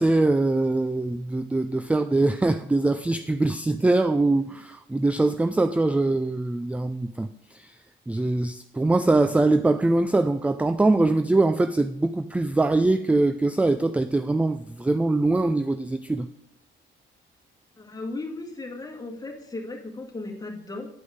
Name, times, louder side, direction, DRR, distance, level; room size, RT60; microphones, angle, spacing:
voice 1, 0.0-7.8 8.1-16.3, right 2 dB, 5° right, 0.3 m, -23 dB
voice 2, 17.8-20.9, left 2 dB, 20° left, 1.9 m, -36 dB
9.7 x 5.2 x 5.0 m
cardioid pair, 90°, 20 cm